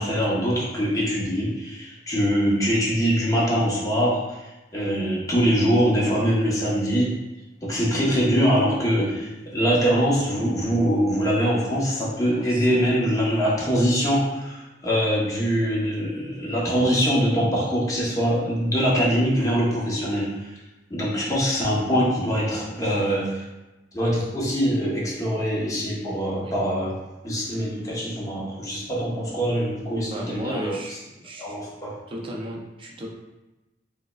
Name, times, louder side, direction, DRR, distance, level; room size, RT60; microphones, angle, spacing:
voice 1, 0.0-4.4 4.7-7.2 7.6-20.5 20.9-23.4 23.9-27.0 27.2-30.8 31.4-32.0, equal, 20° left, -5 dB, 0.7 m, -23 dB
voice 2, 12.3-13.0 21.1-21.3 21.8-22.3 26.4-26.6 28.8-29.4 30.0-31.6 32.1-33.1, right 1 dB, 30° right, -2 dB, 0.5 m, -36 dB
4.7 x 2.1 x 2.2 m, 1.0 s
head